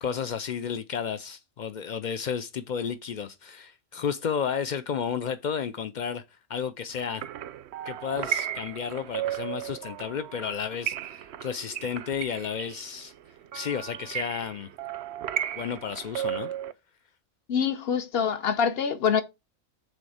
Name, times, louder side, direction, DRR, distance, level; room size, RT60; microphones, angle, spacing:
voice 1, 0.0-6.2 6.5-7.3 7.8-13.1 13.5-14.7 15.6-16.5, left 7 dB, 80° left, 0.4 m, -32 dB
sound 1, 7.0-16.7, right 10 dB, 65° right, 0.7 m, -35 dB
voice 2, 17.5-19.2, left 7 dB, 55° left, 0.9 m, -25 dB
6.5 x 4.1 x 4.9 m
omnidirectional pair, 1.4 m